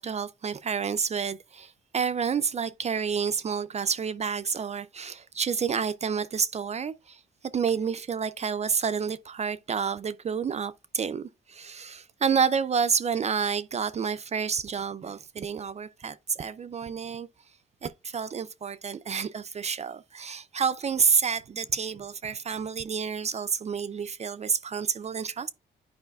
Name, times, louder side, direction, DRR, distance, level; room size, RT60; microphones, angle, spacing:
voice 1, 0.0-7.2 7.5-17.3 17.8-25.5, right 6 dB, 35° right, 0.4 m, -29 dB
10.5 x 4.8 x 2.3 m
cardioid pair, 90°, 20 cm